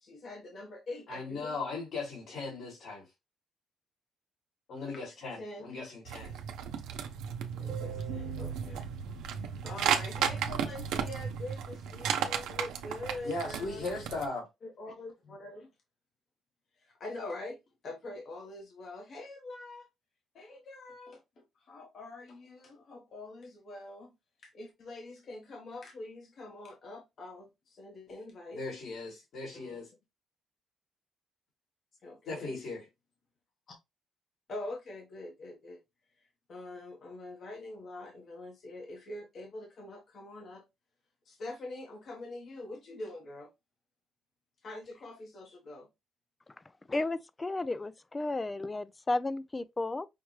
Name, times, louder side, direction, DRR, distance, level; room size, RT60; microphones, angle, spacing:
voice 1, 0.0-1.6 4.9-5.0 5.4-5.7 7.5-8.9 9.6-13.9 14.6-15.7 16.8-19.9 20.3-24.1 24.4-28.6 29.5-29.8 32.0-32.5 33.7-33.8 34.5-35.8 36.2-40.6 41.2-43.5 44.6-45.9, left 2 dB, 55° left, 1.1 m, -44 dB
voice 2, 1.1-3.1 4.7-6.4 13.2-14.5 28.5-29.9 32.3-32.8, left 3 dB, 75° left, 2.4 m, -38 dB
sound 1, 6.1-14.3, right 8 dB, 85° right, 0.6 m, -34 dB
voice 3, 46.9-50.1, left 2 dB, 20° left, 0.4 m, -33 dB
5.7 x 2.2 x 3.1 m
cardioid pair, 90°, 0 cm